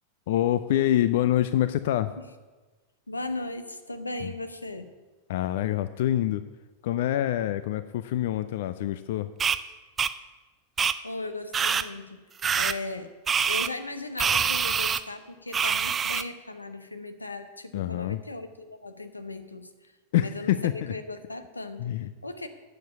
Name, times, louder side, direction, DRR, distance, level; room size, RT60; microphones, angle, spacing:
voice 1, 0.3-2.1 4.2-4.3 5.3-6.4 6.8-9.3 17.7-18.2 20.1-20.9 21.8-22.1, left 12 dB, 55° left, 13 dB, 0.4 m, -26 dB
voice 2, 3.1-4.9 11.0-12.2 12.5-13.1 13.4-19.9 20.2-21.9 22.2-22.5, left 2 dB, 80° left, 9 dB, 0.9 m, -37 dB
sound 1, 9.4-9.6 10.0-10.1 10.8-10.9 11.5-11.8 12.4-12.7 13.3-13.7 14.2-15.0 15.5-16.2, right 7 dB, 20° right, 0.4 m, -25 dB
9.1 x 7.4 x 8.2 m, 1.3 s
figure-of-eight pair, 90°, 0 cm